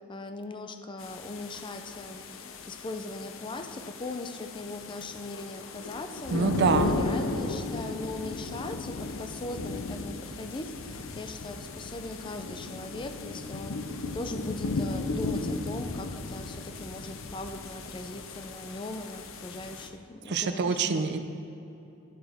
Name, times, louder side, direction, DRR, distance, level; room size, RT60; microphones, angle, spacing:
voice 1, 0.1-21.2, left 2 dB, 25° left, 7 dB, 0.5 m, -39 dB
sound 1, 1.0-19.9, left 3 dB, 70° left, 0.6 m, -36 dB
voice 2, 6.3-6.9 20.3-21.2, right 5 dB, 55° right, 9 dB, 0.5 m, -25 dB
11.0 x 7.6 x 3.5 m, 2.9 s
head